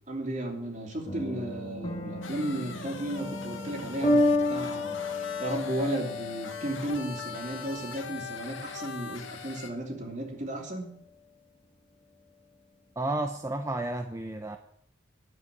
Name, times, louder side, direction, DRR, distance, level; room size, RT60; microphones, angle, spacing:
voice 1, 0.1-5.0 5.4-10.9, right 1 dB, 40° right, 2 dB, 3.0 m, -34 dB
sound 1, 1.0-10.1, left 1 dB, 30° left, 1.6 m, -32 dB
sound 2, 2.2-9.7, left 5 dB, 75° left, 2.0 m, -42 dB
voice 2, 13.0-14.6, right 2 dB, 15° right, 6 dB, 0.7 m, -32 dB
11.0 x 8.2 x 9.3 m, 0.68 s
head